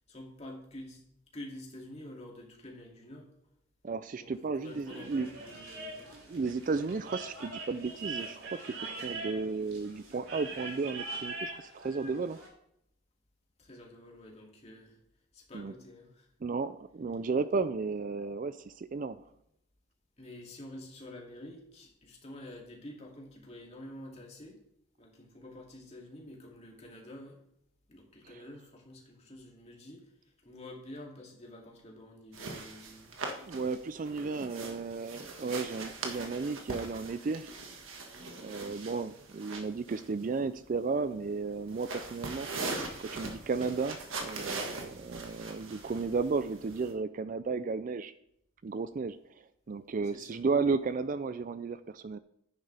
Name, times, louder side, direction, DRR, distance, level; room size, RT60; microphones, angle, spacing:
voice 1, 0.1-1.1 1.3-3.3 4.2-6.0 6.9-7.0 13.6-15.0 15.3-16.3 20.2-24.6 25.0-27.4 27.9-33.2 34.1-34.8 35.4-35.7 50.1-50.4, left 1 dB, 30° left, -1 dB, 2.5 m, -48 dB
voice 2, 3.8-5.3 6.1-12.4 15.5-15.7 16.4-19.2 33.4-37.5 38.4-42.5 43.0-48.1 48.6-52.2, right 4 dB, 40° right, 13 dB, 0.3 m, -34 dB
sound 1, 4.6-12.5, right 3 dB, 85° right, 4.8 m, -42 dB
sound 2, 32.3-46.9, right 3 dB, 65° right, 1.6 m, -41 dB
11.0 x 9.6 x 3.4 m, 0.74 s
head